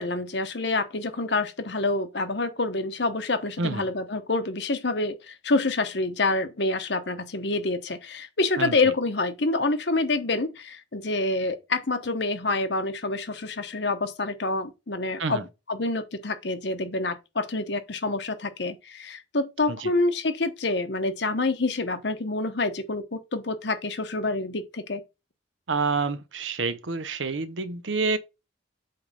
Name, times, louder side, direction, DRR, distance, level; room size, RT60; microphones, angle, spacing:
voice 1, 0.0-15.4 15.7-25.0, left 2 dB, 60° left, 1.1 m, -27 dB
voice 2, 25.7-28.2, right 4 dB, 80° right, 0.9 m, -28 dB
7.8 x 3.4 x 5.5 m
head